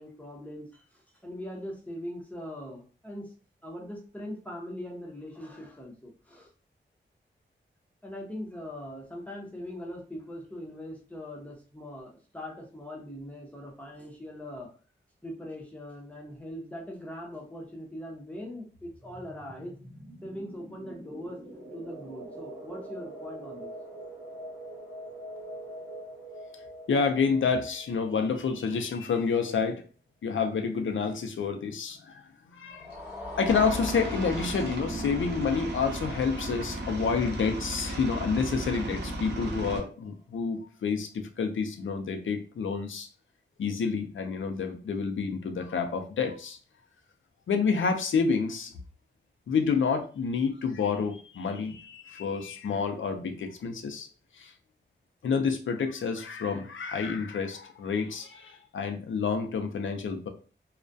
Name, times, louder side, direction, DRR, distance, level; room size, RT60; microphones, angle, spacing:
voice 1, 0.0-3.3 3.6-6.5 8.0-14.7 15.2-19.7 20.2-21.4 21.7-23.7, left 1 dB, 5° left, -1 dB, 0.6 m, -41 dB
sound 1, 18.7-29.2, right 1 dB, 35° right, 1.0 m, -44 dB
voice 2, 26.9-29.8 30.2-32.3 32.5-33.0 33.4-43.1 43.6-46.6 47.5-48.7 49.5-54.1 54.3-54.5 55.2-60.3, left 5 dB, 80° left, 6 dB, 0.4 m, -29 dB
sound 2, 32.7-39.0, left 2 dB, 10° right, 1.1 m, -43 dB
Aircraft, 33.5-39.8, right 1 dB, 60° right, 0.6 m, -35 dB
2.3 x 2.1 x 2.5 m, 0.38 s
wide cardioid pair, 120°, 20 cm